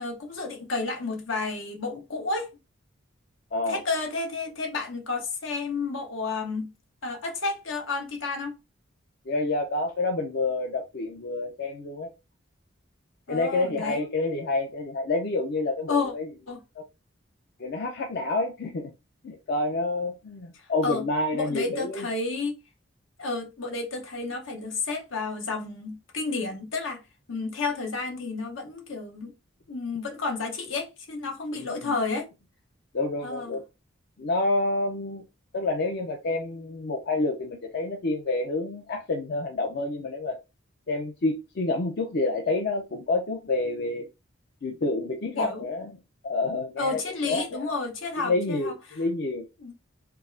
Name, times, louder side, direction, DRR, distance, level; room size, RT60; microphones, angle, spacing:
voice 1, 0.0-2.5 3.7-6.7 7.0-8.6 13.3-14.1 15.9-16.1 16.5-16.6 20.8-21.0 21.3-22.6 23.2-27.0 27.3-29.3 29.7-32.3 33.2-33.6 45.3-45.6 46.8-48.7 49.6-49.7, left 3 dB, 75° left, 1.0 m, -31 dB
voice 2, 9.3-12.1 13.3-16.3 16.8-16.9 17.6-18.9 19.2-22.1 31.6-32.0 32.9-33.6 34.2-35.2 35.5-40.4 40.9-44.1 44.6-46.0 46.2-47.0 47.3-47.8 48.2-49.4, left 2 dB, 55° left, 0.5 m, -28 dB
4.5 x 2.0 x 2.6 m
head